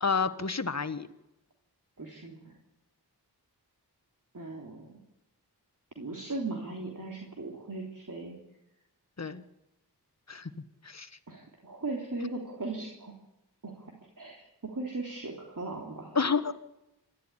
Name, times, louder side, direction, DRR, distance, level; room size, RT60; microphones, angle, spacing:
voice 1, 0.0-1.1 9.2-9.4 10.3-10.5 10.8-11.1 16.1-16.5, left 5 dB, 40° left, 11 dB, 1.4 m, -29 dB
voice 2, 2.0-2.5 4.3-5.0 6.0-8.4 11.3-13.1 13.6-16.2, right 2 dB, 50° right, 0 dB, 3.3 m, -38 dB
27.0 x 12.5 x 9.8 m, 0.93 s
wide cardioid pair, 60°, 40 cm